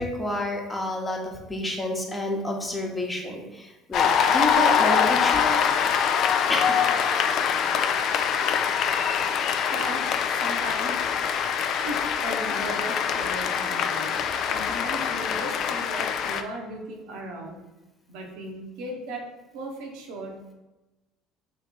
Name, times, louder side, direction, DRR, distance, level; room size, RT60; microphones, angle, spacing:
voice 1, 0.0-5.7 6.5-6.8, left 1 dB, 20° left, 0 dB, 1.0 m, -29 dB
Cheering / Applause, 3.9-16.4, left 7 dB, 55° left, 0.3 m, -24 dB
voice 2, 9.7-11.1 11.8-17.6 18.1-20.5, right 1 dB, 70° right, 0 dB, 0.8 m, -37 dB
3.3 x 2.8 x 4.3 m, 1.0 s
hypercardioid pair, 65°, 0 cm